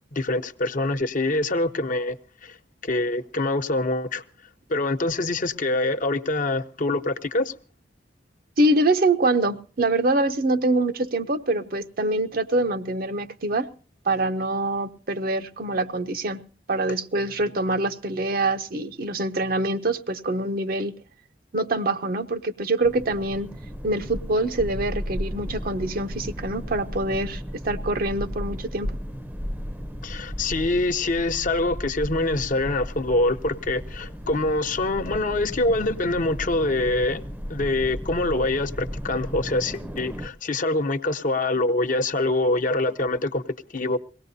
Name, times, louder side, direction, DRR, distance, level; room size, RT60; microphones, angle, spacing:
voice 1, 0.1-2.2 2.4-2.6 2.8-4.2 4.7-7.5 30.0-37.2 37.5-44.0, left 2 dB, 45° left, 0.8 m, -25 dB
voice 2, 8.6-13.7 14.1-16.4 16.7-20.9 21.5-23.5 23.8-29.0, right 2 dB, 55° right, 0.7 m, -25 dB
sound 1, 22.8-40.3, equal, 10° right, 0.7 m, -35 dB
22.5 x 17.5 x 2.7 m
head